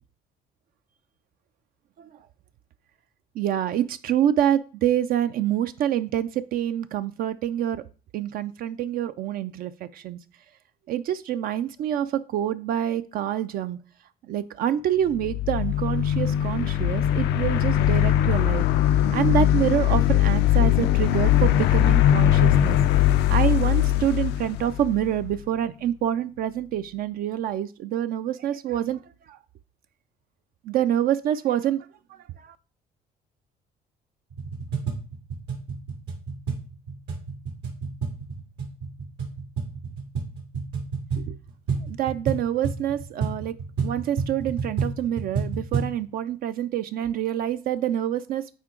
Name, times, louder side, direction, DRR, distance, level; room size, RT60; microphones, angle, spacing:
voice 1, 3.4-7.8 8.1-10.2 10.9-13.8 14.3-18.7 19.1-22.8 23.3-29.0 29.3-29.4 30.6-32.6 41.1-41.3 41.8-43.5 43.8-48.5, right 11 dB, 60° right, 11 dB, 0.4 m, -26 dB
sound 1, 15.1-25.3, left 12 dB, 85° left, 0.5 m, -21 dB
sound 2, 34.3-46.0, right 5 dB, 85° right, 1.9 m, -31 dB
9.4 x 3.6 x 3.7 m, 0.37 s
cardioid pair, 110°, 17 cm